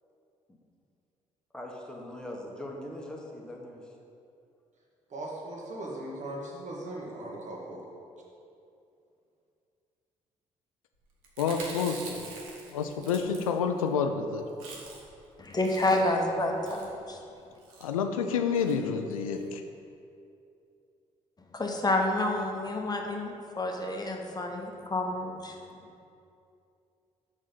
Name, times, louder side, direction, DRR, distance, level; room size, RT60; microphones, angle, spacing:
voice 1, 1.5-3.9 24.1-24.2, left 1 dB, 5° left, -1 dB, 1.2 m, -41 dB
voice 2, 5.1-7.8, right 1 dB, 45° right, -2 dB, 1.5 m, -39 dB
Chewing mastication, 11.2-13.9 14.2-14.3 14.5-15.2 15.5-16.2 16.6-16.9 17.6-17.9 18.5-18.8 19.1-19.2 19.4-19.5, right 3 dB, 75° right, 0.8 m, -45 dB
voice 3, 11.4-12.3 12.7-14.5 17.8-19.6, left 6 dB, 85° left, 6 dB, 0.4 m, -29 dB
voice 4, 15.4-17.2 21.5-25.6, left 1 dB, 25° left, 2 dB, 1.0 m, -29 dB
6.4 x 3.6 x 5.9 m, 2.6 s
figure-of-eight pair, 45°, 17 cm